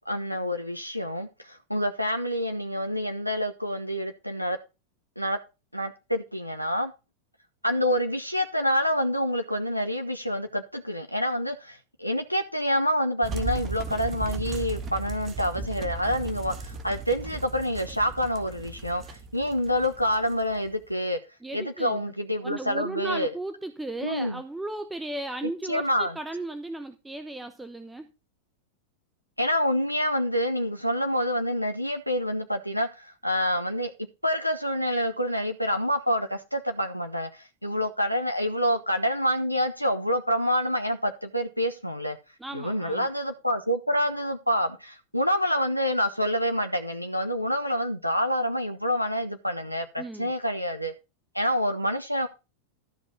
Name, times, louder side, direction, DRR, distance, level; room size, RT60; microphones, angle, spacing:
voice 1, 0.1-4.6 5.2-5.4 5.7-6.9 7.6-21.2 21.5-23.3 24.0-24.4 25.7-26.2 29.4-33.9 34.2-42.2 42.5-50.9 51.3-52.3, equal, 90° left, 1.2 m, -27 dB
sound 1, 13.2-20.8, right 3 dB, 30° right, 1.7 m, -36 dB
voice 2, 21.4-22.0 22.4-28.1 42.4-43.1 50.0-50.3, right 1 dB, 5° right, 0.9 m, -35 dB
13.5 x 5.2 x 5.3 m
figure-of-eight pair, 90°, 0 cm